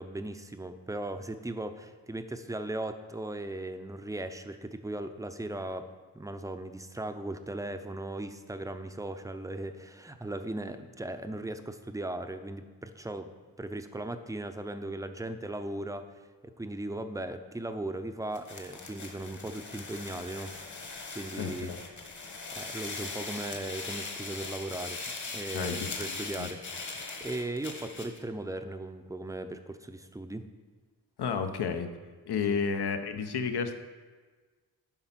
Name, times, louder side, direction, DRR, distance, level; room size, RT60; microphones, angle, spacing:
voice 1, 0.0-5.9 6.1-13.3 13.6-16.1 16.6-20.5 21.1-21.7 22.6-25.0 25.3-26.9 27.2-30.5 32.5-32.6, right 1 dB, 10° right, 8 dB, 0.6 m, -37 dB
sound 1, 18.3-28.2, left 3 dB, 45° left, 1.5 m, -40 dB
voice 2, 21.4-21.8 25.5-25.9 26.4-26.5 31.2-31.9 32.3-33.7, left 6 dB, 70° left, 8 dB, 0.8 m, -31 dB
10.5 x 4.4 x 5.8 m, 1.4 s
wide cardioid pair, 90°, 40 cm